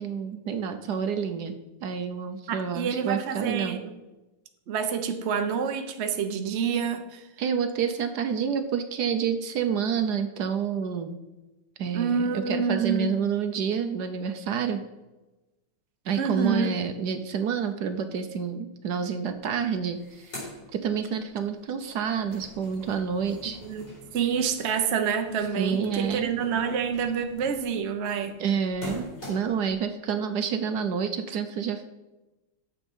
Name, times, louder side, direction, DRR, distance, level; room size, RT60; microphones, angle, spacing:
voice 1, 0.0-1.5 1.8-3.8 7.4-11.2 11.8-14.8 16.1-23.6 25.6-26.4 28.4-31.8, right 7 dB, 65° right, 8 dB, 1.2 m, -29 dB
voice 2, 2.5-4.0 4.7-7.2 11.9-13.1 16.2-16.7 23.6-23.8 24.1-28.4, right 6 dB, 50° right, 6 dB, 0.9 m, -27 dB
sound 1, 19.3-19.4 19.7-21.4 21.8-29.7, left 2 dB, 70° left, 5.0 m, -45 dB
9.7 x 7.2 x 5.5 m, 1.1 s
omnidirectional pair, 2.0 m